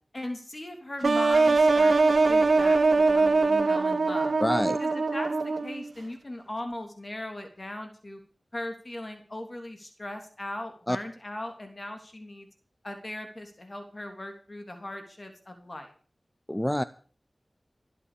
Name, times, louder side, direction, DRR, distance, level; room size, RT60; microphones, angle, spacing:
voice 1, 0.1-4.3 4.8-8.2 8.5-12.5 12.8-15.9, left 1 dB, 40° left, 5 dB, 3.2 m, -38 dB
sound 1, 1.0-5.9, right 3 dB, 85° right, 1.6 m, -22 dB
voice 2, 4.4-4.8 10.9-11.0 16.5-16.8, left 1 dB, 15° left, 14 dB, 0.7 m, -26 dB
19.5 x 8.5 x 6.8 m, 0.43 s
wide cardioid pair, 55°, 0 cm